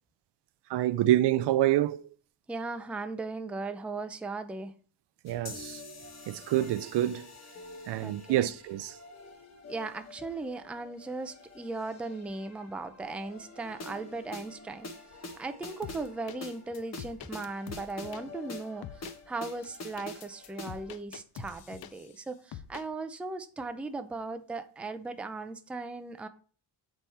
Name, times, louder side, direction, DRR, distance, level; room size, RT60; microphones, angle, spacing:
voice 1, 0.7-2.0 5.2-5.8 6.3-7.3 7.9-8.9, right 13 dB, 80° right, 0.5 m, -27 dB
voice 2, 2.5-4.7 8.0-8.5 9.7-14.9 15.4-18.9 19.3-26.3, right 3 dB, 5° right, 0.4 m, -37 dB
sound 1, 5.3-20.9, left 2 dB, 40° left, 1.1 m, -46 dB
sound 2, 15.8-16.4 16.7-18.2 18.8-19.2 19.6-22.2 22.5-22.8, left 10 dB, 60° left, 0.6 m, -45 dB
7.6 x 3.4 x 4.2 m
cardioid pair, 130°, 41 cm